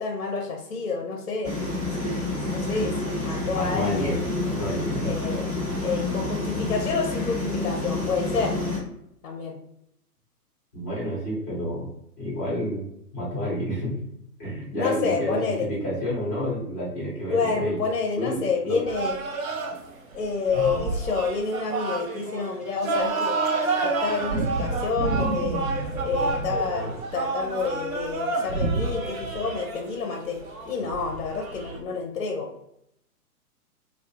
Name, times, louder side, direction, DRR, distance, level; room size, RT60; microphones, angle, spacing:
voice 1, 0.0-1.5 2.0-4.3 5.0-5.5 5.8-8.6 9.2-9.6 14.8-15.7 17.3-19.1 20.1-23.4 23.8-25.7 26.0-30.4 30.7-32.5, left 4 dB, 60° left, 1 dB, 0.5 m, -29 dB
sound 1, 1.4-8.8, left 2 dB, 25° right, 0.9 m, -29 dB
voice 2, 3.5-5.3 10.7-11.9 12.2-12.9 13.1-14.0 14.4-17.8 18.1-18.8 20.5-20.9, equal, 10° left, -8 dB, 0.5 m, -30 dB
sound 2, 18.9-31.8, right 3 dB, 60° right, 0.6 m, -29 dB
2.3 x 2.0 x 2.9 m, 0.77 s
figure-of-eight pair, 125°, 47 cm